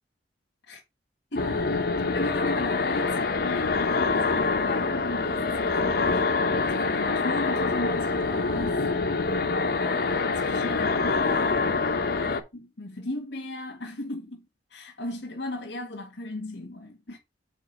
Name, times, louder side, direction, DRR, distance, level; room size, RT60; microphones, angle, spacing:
voice 1, 1.3-1.6 2.1-6.2 6.6-8.8 10.2-11.7 12.5-14.5 14.7-17.2, left 2 dB, 75° left, 1.8 m, -36 dB
sound 1, 1.4-12.4, left 4 dB, 60° left, 0.9 m, -25 dB
7.3 x 4.5 x 4.2 m
head